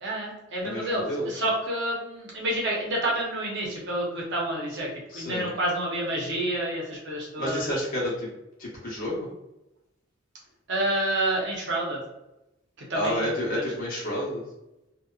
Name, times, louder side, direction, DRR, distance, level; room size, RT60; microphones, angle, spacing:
voice 1, 0.0-7.8 10.7-12.0 12.8-13.6, right 1 dB, 65° right, -3 dB, 0.8 m, -29 dB
voice 2, 0.6-1.4 5.1-5.5 7.4-8.3 8.6-9.3 12.9-14.4, equal, 45° left, -6 dB, 1.0 m, -30 dB
2.7 x 2.2 x 2.3 m, 0.92 s
head